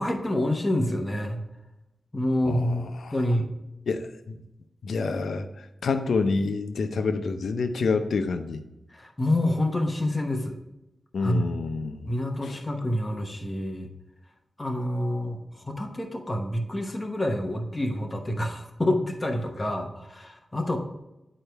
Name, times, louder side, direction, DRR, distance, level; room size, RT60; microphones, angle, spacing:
voice 1, 0.0-1.4 2.1-2.8 3.1-3.5 8.9-10.6 11.2-11.5 12.1-13.9 14.6-20.8, left 1 dB, 20° left, 3 dB, 1.0 m, -27 dB
voice 2, 2.4-3.1 3.9-4.4 4.8-5.5 5.8-8.6 11.1-12.1 12.4-12.6, left 4 dB, 80° left, 9 dB, 0.6 m, -28 dB
9.9 x 4.5 x 3.4 m, 0.95 s
wide cardioid pair, 90°, 0 cm